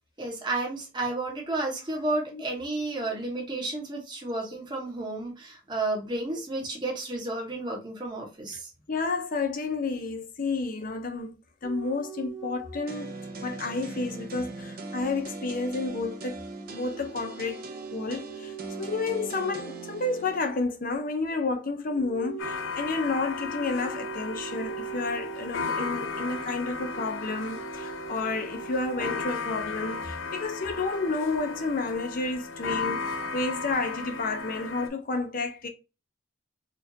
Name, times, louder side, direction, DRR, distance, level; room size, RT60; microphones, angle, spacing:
voice 1, 0.2-8.7, right 2 dB, 25° right, 1.0 m, -32 dB
voice 2, 8.9-16.4 16.7-17.6 17.9-33.0 33.3-35.7, left 3 dB, 45° left, 0.6 m, -31 dB
sound 1, 11.6-20.7 21.9-29.2, right 8 dB, ahead, 0.6 m, -43 dB
sound 2, 12.9-20.5, right 2 dB, 50° right, 0.6 m, -40 dB
sound 3, 22.4-34.9, left 4 dB, 85° left, 0.7 m, -35 dB
4.3 x 2.4 x 2.7 m
head